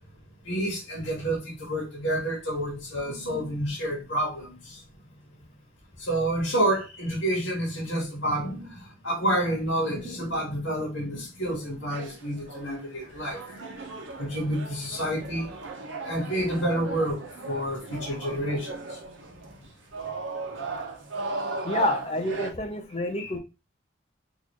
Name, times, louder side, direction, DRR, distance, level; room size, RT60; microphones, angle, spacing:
voice 1, 0.4-4.8 6.0-13.8 14.2-15.5 16.0-19.0 23.2-23.3, right 1 dB, 85° left, 1.5 m, -29 dB
sound 1, 11.6-22.5, right 3 dB, 90° right, 0.9 m, -37 dB
voice 2, 21.6-23.4, left 1 dB, 30° left, 0.7 m, -28 dB
3.8 x 2.6 x 3.0 m
head